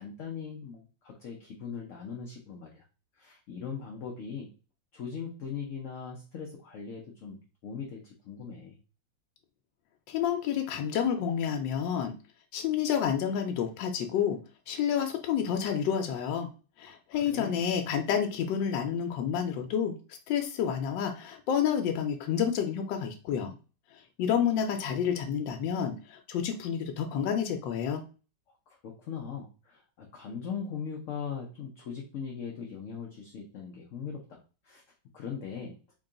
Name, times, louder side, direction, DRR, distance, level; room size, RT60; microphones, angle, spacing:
voice 1, 0.0-2.8 3.2-4.5 4.9-8.8 16.9-17.0 17.3-17.7 28.7-34.4 34.6-34.8 35.1-35.8, left 6 dB, 65° left, 0 dB, 0.8 m, -40 dB
voice 2, 10.1-12.1 12.5-14.4 14.7-16.5 16.8-19.9 20.3-23.5 24.2-28.0, left 8 dB, 85° left, 5 dB, 1.3 m, -29 dB
3.6 x 2.3 x 3.7 m, 0.35 s
omnidirectional pair, 2.0 m